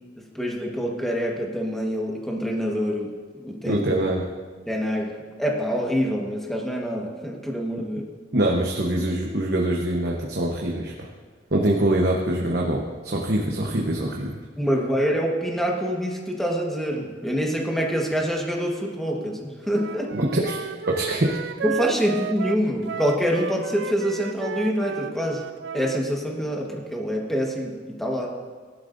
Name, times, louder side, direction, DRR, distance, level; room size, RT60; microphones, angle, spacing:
voice 1, 0.3-3.8 4.6-5.1 5.4-8.0 14.6-20.2 21.6-25.4 25.7-28.3, equal, ahead, -1 dB, 1.3 m, -26 dB
voice 2, 3.6-4.2 8.3-11.1 11.5-14.4 20.1-20.6 20.9-21.4, right 1 dB, 60° right, -1 dB, 1.0 m, -24 dB
Wind instrument woodwind instrument, 19.7-26.0, right 7 dB, 75° right, 0.3 m, -33 dB
17.0 x 11.5 x 2.6 m, 1.5 s
head